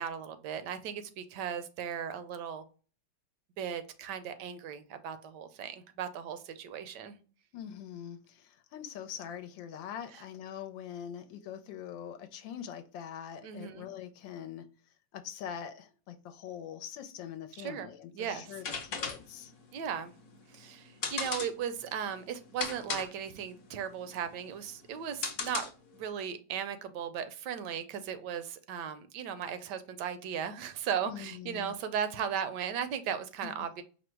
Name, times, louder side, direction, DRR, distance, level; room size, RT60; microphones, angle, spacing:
voice 1, 0.0-2.6 3.6-7.2 13.4-13.9 17.6-17.9 18.1-18.6 19.7-20.1 20.5-25.6 25.9-33.8, right 8 dB, 75° right, 1.1 m, -37 dB
voice 2, 7.5-14.7 15.1-19.5 31.1-31.7 33.4-33.5, left 9 dB, 80° left, 1.3 m, -43 dB
sound 1, 18.5-26.1, left 5 dB, 55° left, 1.0 m, -38 dB
5.0 x 2.0 x 4.4 m
omnidirectional pair, 2.0 m